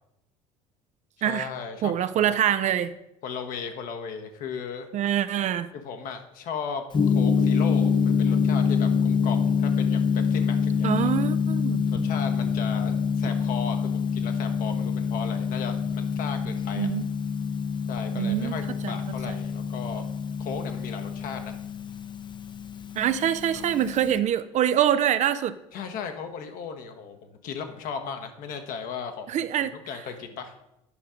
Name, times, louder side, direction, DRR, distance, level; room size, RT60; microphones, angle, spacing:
voice 1, 1.2-2.4 3.2-4.9 5.7-11.1 11.9-16.9 17.9-20.1 20.4-21.6 23.5-23.7 25.7-29.3 29.6-30.5, left 6 dB, 60° left, 6 dB, 1.2 m, -36 dB
voice 2, 1.8-2.9 4.9-5.7 10.8-11.9 16.8-17.1 18.1-18.6 18.8-18.9 19.3-19.4 23.0-25.5 29.3-29.7, right 10 dB, 45° right, 12 dB, 0.5 m, -24 dB
Gong, 6.9-24.2, left 6 dB, 30° left, 0.7 m, -26 dB
10.0 x 5.5 x 5.1 m, 0.86 s
hypercardioid pair, 65°, 16 cm